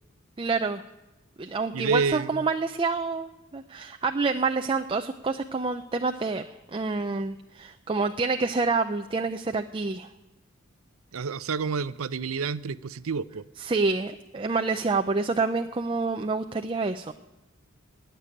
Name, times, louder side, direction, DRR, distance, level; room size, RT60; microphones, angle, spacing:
voice 1, 0.4-0.8 1.4-6.4 6.7-10.1 13.6-17.1, right 4 dB, 25° right, 6 dB, 0.4 m, -27 dB
voice 2, 1.7-2.5 11.1-13.5, right 5 dB, 90° right, 15 dB, 0.6 m, -29 dB
19.5 x 6.8 x 9.9 m, 1.1 s
head